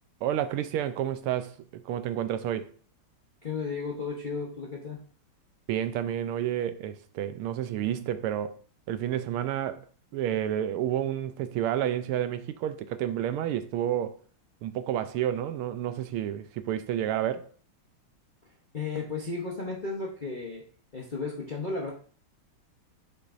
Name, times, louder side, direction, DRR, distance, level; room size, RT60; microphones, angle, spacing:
voice 1, 0.2-2.7 5.7-8.6 8.9-9.8 10.1-14.2 14.6-17.5, right 11 dB, 90° right, 1.5 m, -30 dB
voice 2, 3.4-5.0 18.7-20.6 20.9-21.9, left 4 dB, 50° left, 0.5 m, -34 dB
6.7 x 6.5 x 2.6 m
omnidirectional pair, 2.3 m